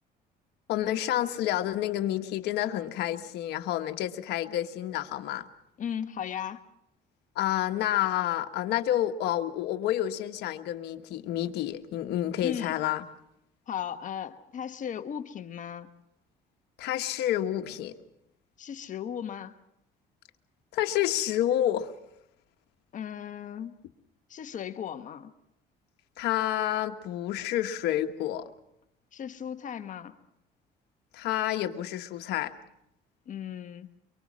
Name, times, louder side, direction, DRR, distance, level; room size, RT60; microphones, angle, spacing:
voice 1, 0.7-5.5 7.3-13.0 16.8-18.0 20.7-21.9 26.2-28.5 31.1-32.5, left 12 dB, 80° left, 1.4 m, -29 dB
voice 2, 5.8-6.6 12.4-12.7 13.7-16.0 18.6-19.5 22.9-23.7 24.3-25.3 29.1-30.2 33.3-34.0, left 9 dB, 50° left, 1.2 m, -36 dB
24.5 x 23.5 x 6.2 m
cardioid pair, 110°, 17 cm